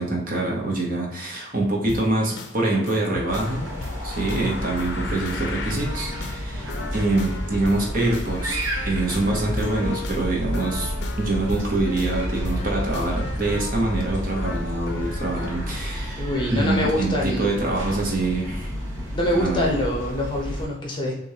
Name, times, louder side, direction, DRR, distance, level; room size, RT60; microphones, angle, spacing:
voice 1, 0.0-3.7 4.0-18.7 19.3-19.7, right 2 dB, 45° right, -1 dB, 1.0 m, -25 dB
sound 1, 1.9-15.7, left 3 dB, 55° left, 0.5 m, -37 dB
sound 2, 3.3-20.6, equal, 75° right, 1.0 m, -30 dB
voice 2, 16.2-17.5 19.1-21.2, left 1 dB, 25° left, -1 dB, 0.8 m, -25 dB
6.2 x 2.6 x 2.8 m, 0.88 s
head